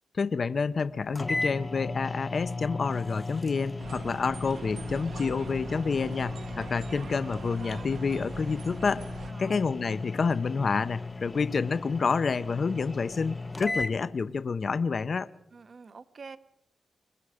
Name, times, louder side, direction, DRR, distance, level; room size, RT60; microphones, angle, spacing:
voice 1, 0.1-9.1 9.4-15.3, left 5 dB, 45° left, 14 dB, 0.7 m, -29 dB
sound 1, 0.8-0.9 1.2-14.0, left 3 dB, 20° left, 0.9 m, -36 dB
sound 2, 3.8-9.3, right 5 dB, 65° right, 1.2 m, -43 dB
voice 2, 9.3-9.6 13.7-13.8 15.5-16.4, right 4 dB, 40° right, 12 dB, 0.9 m, -46 dB
25.0 x 22.5 x 5.0 m, 0.81 s
wide cardioid pair, 170°, 0 cm